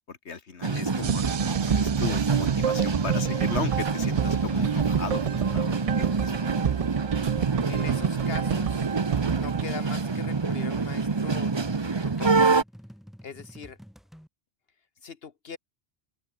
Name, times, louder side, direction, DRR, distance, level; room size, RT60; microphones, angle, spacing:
voice 1, 0.0-6.5, left 5 dB, 85° left, 2.0 m, -36 dB
sound 1, 0.6-12.6, right 4 dB, 25° right, 0.8 m, -27 dB
Unpretentious Reveal (no drums), 1.0-9.6, right 8 dB, 55° right, 0.4 m, -29 dB
voice 2, 7.7-8.9 9.4-11.5 11.8-12.4 13.2-13.8 15.0-15.6, left 6 dB, 65° left, 1.3 m, -40 dB
sound 2, 9.6-14.3, equal, ahead, 3.1 m, -50 dB
open air
omnidirectional pair, 1.1 m